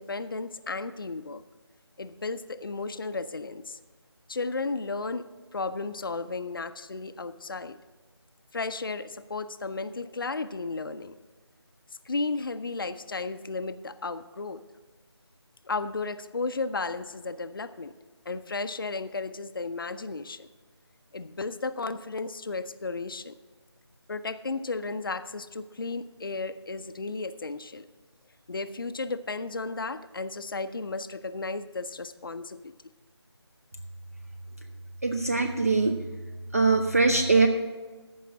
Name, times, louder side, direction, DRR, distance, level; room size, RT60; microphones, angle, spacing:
voice 1, 0.0-1.4 2.0-3.8 4.3-5.3 5.5-7.8 8.5-11.1 12.1-14.6 15.6-17.9 18.3-20.5 21.1-23.3 24.1-27.9 28.5-32.7, left 3 dB, 50° left, 11 dB, 0.5 m, -34 dB
voice 2, 35.0-36.0 36.5-37.5, right 3 dB, 35° right, 5 dB, 0.5 m, -22 dB
14.5 x 5.6 x 6.0 m, 1.3 s
figure-of-eight pair, 160°, 14 cm